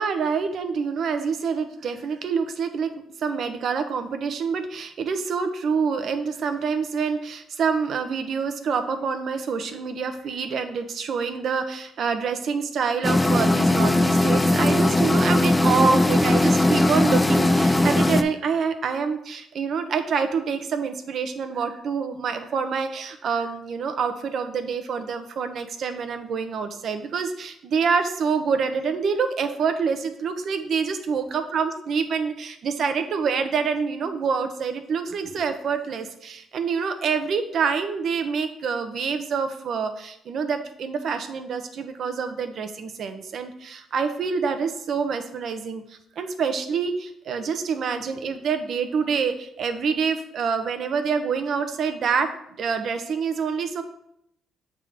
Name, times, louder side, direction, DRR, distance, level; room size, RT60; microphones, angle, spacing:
voice 1, 0.0-2.9 3.2-52.3 52.6-53.8, right 5 dB, 60° right, 8 dB, 0.8 m, -26 dB
sound 1, 13.0-18.2, left 1 dB, 10° left, 0.4 m, -19 dB
7.1 x 3.7 x 5.1 m, 0.75 s
cardioid pair, 90°, 0 cm